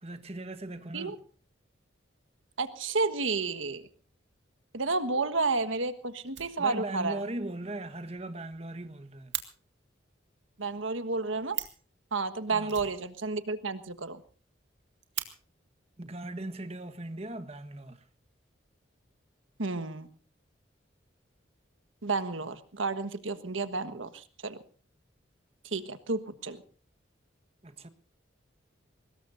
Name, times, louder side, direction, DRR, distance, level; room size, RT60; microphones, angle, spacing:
voice 1, 0.0-1.2 6.6-9.3 12.5-12.8 16.0-18.1 27.6-27.9, right 1 dB, 30° right, 1.3 m, -39 dB
voice 2, 2.6-3.8 4.7-7.2 10.6-11.6 12.1-14.2 19.6-20.1 22.0-24.6 25.6-26.6, right 3 dB, 90° right, 1.4 m, -31 dB
Fire, 6.3-7.1 7.4-7.5 7.8-7.9 8.2-8.3 8.5-9.5 11.2-11.3 11.5-11.9 12.7-13.6 13.9-14.0 14.3-14.4 14.8-15.3 16.3-16.4 17.1-17.7, right 13 dB, 65° right, 2.2 m, -39 dB
24.0 x 20.0 x 2.7 m
head